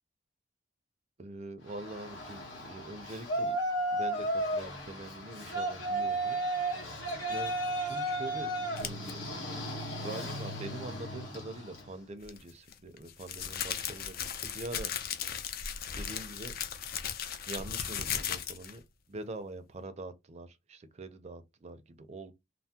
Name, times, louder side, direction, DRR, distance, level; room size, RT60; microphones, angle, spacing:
voice 1, 1.2-3.6 3.9-6.4 7.3-9.3 10.0-14.9 15.9-16.5 17.5-18.8 19.1-22.3, right 2 dB, 35° right, 0.4 m, -44 dB
Yell, 1.7-11.9, right 1 dB, 75° left, 1.1 m, -34 dB
sound 1, 8.8-9.1 12.2-18.8, left 8 dB, 55° left, 0.4 m, -36 dB
3.3 x 2.0 x 2.7 m
head